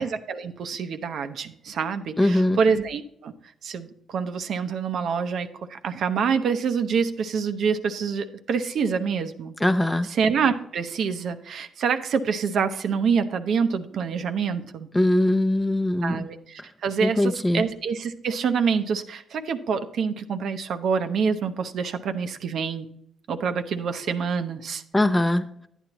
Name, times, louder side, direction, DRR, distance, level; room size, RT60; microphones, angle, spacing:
voice 1, 0.0-3.3 3.6-9.5 10.1-14.9 16.0-22.9 23.3-24.8, right 6 dB, 65° right, 8 dB, 0.8 m, -26 dB
voice 2, 2.2-2.6 9.6-10.1 14.9-16.3 17.0-17.6 24.9-25.5, left 1 dB, 10° left, 8 dB, 0.7 m, -21 dB
11.0 x 9.0 x 3.0 m, 0.71 s
cardioid pair, 90°, 0 cm